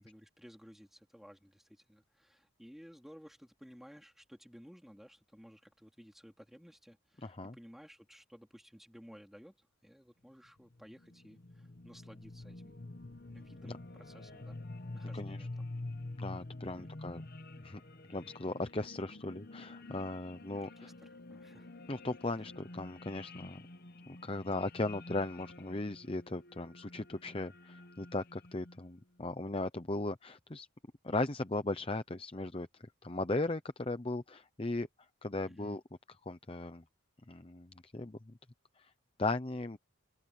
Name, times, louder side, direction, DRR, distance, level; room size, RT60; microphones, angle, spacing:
voice 1, 0.0-12.8 13.3-14.6 14.9-15.7 16.6-17.0 20.5-21.7 22.3-22.4 35.4-35.8, equal, ahead, 3.4 m, -56 dB
voice 2, 7.2-7.5 13.6-13.8 15.1-15.5 16.2-17.2 17.6-17.8 18.1-20.9 21.9-23.6 24.1-30.7 31.0-32.7 33.0-34.9 35.2-35.8 36.1-36.8 37.3-38.3 38.8-38.9 39.2-39.8, left 2 dB, 25° left, 0.7 m, -37 dB
sound 1, 10.6-29.0, left 2 dB, 45° left, 1.0 m, -48 dB
open air
head